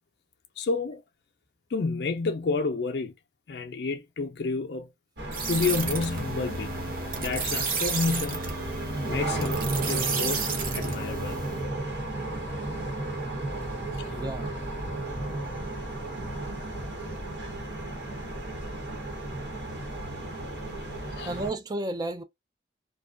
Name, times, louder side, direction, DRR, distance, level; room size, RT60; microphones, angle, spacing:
voice 1, 0.6-1.0 1.7-3.1 3.5-4.9 5.5-6.7 7.2-8.5 9.0-10.4 10.7-11.4 14.0-14.2 21.1-21.3, left 4 dB, 60° left, 0.4 m, -30 dB
sound 1, 5.2-21.5, right 2 dB, 65° right, 1.1 m, -34 dB
sound 2, 5.3-11.7, right 4 dB, 50° right, 0.7 m, -32 dB
voice 2, 14.1-14.5 21.3-22.2, right 2 dB, 20° right, 0.3 m, -32 dB
2.5 x 2.2 x 2.3 m
head